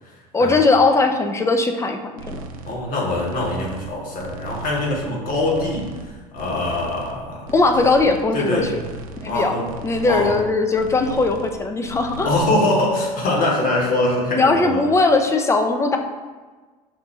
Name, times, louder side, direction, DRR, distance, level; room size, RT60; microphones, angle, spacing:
voice 1, 0.3-2.4 7.5-8.8 9.2-9.6 9.8-12.3 14.3-16.0, left 3 dB, 15° left, 5 dB, 0.5 m, -19 dB
sound 1, 2.2-2.8 3.1-3.9 4.2-5.0 5.3-6.1 6.3-7.1 7.4-8.3 8.5-9.3 9.6-10.5 10.7-11.6 11.8-12.4, right 3 dB, 65° right, 0.5 m, -37 dB
voice 2, 2.6-7.5 8.3-8.7 9.3-9.7 10.1-10.3 12.2-14.8, left 2 dB, 45° left, -2 dB, 1.3 m, -23 dB
5.1 x 2.2 x 4.1 m, 1.3 s
hypercardioid pair, 70°, 19 cm